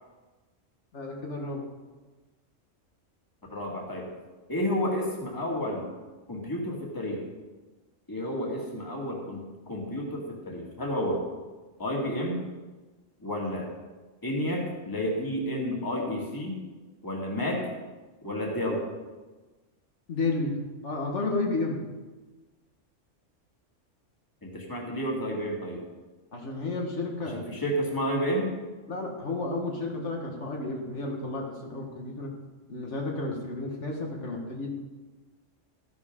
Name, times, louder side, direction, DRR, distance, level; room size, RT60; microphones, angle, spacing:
voice 1, 0.9-1.7 20.1-20.6 20.8-21.8 26.3-27.4 28.9-32.3 32.7-34.7, left 3 dB, 65° left, 0 dB, 1.8 m, -32 dB
voice 2, 3.5-4.1 4.5-5.9 6.3-7.2 8.1-11.2 11.8-12.5 13.2-13.7 14.2-16.6 17.0-17.7 18.2-18.9 24.4-25.8 27.3-28.5, equal, 15° left, -1 dB, 2.0 m, -31 dB
13.5 x 10.5 x 3.7 m, 1.3 s
omnidirectional pair, 1.3 m